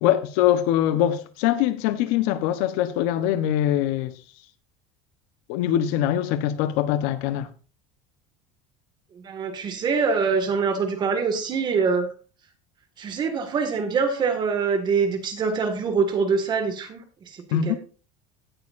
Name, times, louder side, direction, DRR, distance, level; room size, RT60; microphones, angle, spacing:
voice 1, 0.0-4.1 5.5-7.5 17.5-17.7, left 11 dB, 75° left, 1.0 m, -23 dB
voice 2, 9.1-12.1 13.0-17.8, right 5 dB, 30° right, 1.9 m, -24 dB
17.0 x 6.5 x 2.6 m
cardioid pair, 160°, 15 cm